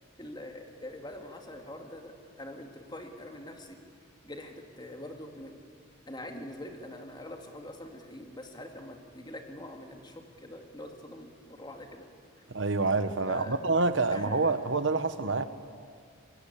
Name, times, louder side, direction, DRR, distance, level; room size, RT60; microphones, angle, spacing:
voice 1, 0.2-3.8 4.2-5.6 6.1-12.1 12.4-12.5 13.3-13.6 14.1-14.6, left 1 dB, 20° left, 3 dB, 2.4 m, -44 dB
voice 2, 12.5-15.4, right 3 dB, 65° right, 11 dB, 1.2 m, -27 dB
25.5 x 20.0 x 8.5 m, 2.1 s
head